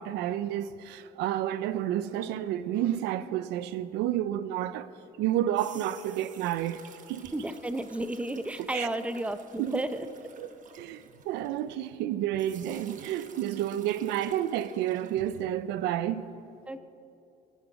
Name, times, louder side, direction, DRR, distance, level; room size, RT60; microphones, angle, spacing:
voice 1, 0.0-4.9 5.2-7.3 8.6-8.9 9.6-9.8 10.4-10.5 10.8-16.3, right 12 dB, 90° right, 0.6 m, -30 dB
sound 1, 5.3-12.0 12.4-15.4, right 7 dB, 50° right, 1.2 m, -53 dB
voice 2, 7.3-10.1 16.7-16.8, right 1 dB, 5° right, 0.7 m, -32 dB
23.0 x 10.5 x 4.8 m
cardioid pair, 110°, 17 cm